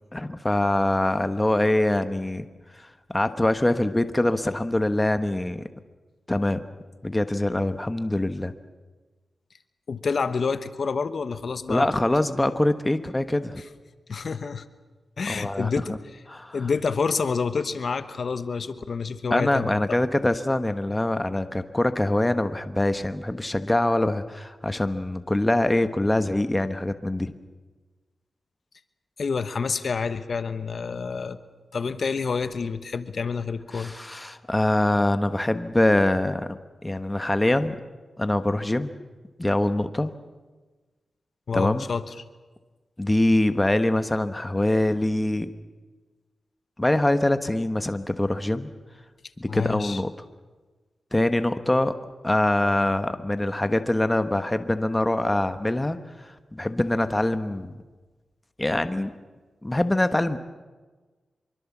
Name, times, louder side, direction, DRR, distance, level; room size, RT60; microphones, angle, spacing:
voice 1, 0.1-2.5 3.1-5.7 6.3-6.6 7.0-8.5 11.7-13.6 15.3-15.7 16.3-16.6 19.3-27.3 33.7-37.8 38.2-38.9 39.4-40.1 41.5-41.8 43.0-45.5 46.8-48.7 49.4-50.1 51.1-51.9 52.2-56.0 56.2-57.7 58.6-59.1 59.6-60.4, left 1 dB, 15° left, 10 dB, 1.1 m, -24 dB
voice 2, 9.9-11.9 13.6-13.7 14.1-14.6 15.2-16.2 16.5-19.7 29.2-31.4 31.7-33.9 41.5-42.2 49.5-50.0, left 5 dB, 55° left, 11 dB, 1.1 m, -28 dB
25.0 x 23.5 x 7.3 m, 1.3 s
wide cardioid pair, 105°, 0 cm